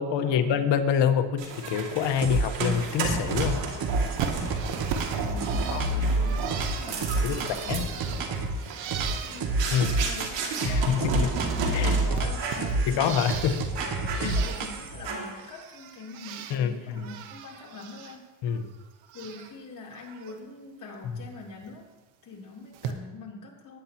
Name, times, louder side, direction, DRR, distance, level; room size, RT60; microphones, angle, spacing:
voice 1, 0.0-3.6 5.7-5.9 7.2-7.4 7.7-7.8 9.7-10.0 10.7-11.3 11.7-12.0 12.9-13.6 14.2-14.4 16.5-17.1 18.4-18.7 21.1-21.2, left 8 dB, 75° left, 7 dB, 1.3 m, -26 dB
sound 1, 1.4-12.0 12.4-12.7 13.1-13.2 13.8-14.6 15.0-15.5, right 4 dB, 70° right, 2.4 m, -34 dB
sound 2, 2.2-2.9 3.3-8.6 8.9-10.3 10.6-15.0, right 2 dB, 50° right, 1.7 m, -28 dB
Bird, 4.2-11.0 11.2-13.7 14.1-14.9 15.3-16.6 16.9-18.2 18.5-19.5 19.9-20.3 21.6-21.7 22.7-22.9, right 8 dB, 90° right, 1.1 m, -39 dB
voice 2, 5.2-8.6 8.9-13.2 13.8-18.3 19.1-21.9 22.2-23.8, left 3 dB, 45° left, -2 dB, 3.4 m, -44 dB
20.5 x 9.6 x 2.9 m, 1.2 s
cardioid pair, 100°, 45 cm